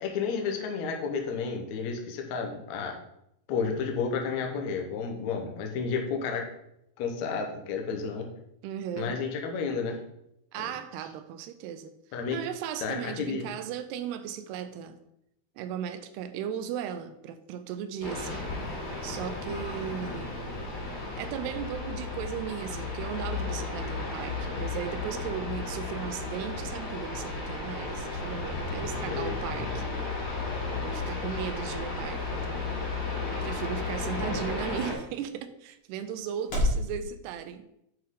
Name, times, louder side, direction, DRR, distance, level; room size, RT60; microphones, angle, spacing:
voice 1, 0.0-2.9 3.5-6.5 7.0-8.2 8.9-10.0 12.1-12.4 12.8-13.5 29.1-29.6, left 5 dB, 85° left, 3 dB, 1.6 m, -31 dB
voice 2, 8.6-9.2 10.5-11.9 12.3-15.0 15.6-18.4 19.0-20.4 21.2-30.0 30.8-32.9 33.4-37.7, right 9 dB, 85° right, 10 dB, 2.6 m, -36 dB
sound 1, 18.0-34.9, left 3 dB, 60° left, 4.5 m, -34 dB
sound 2, 30.6-36.9, left 1 dB, 40° left, 2.6 m, -37 dB
8.2 x 5.6 x 3.7 m, 0.79 s
omnidirectional pair, 4.8 m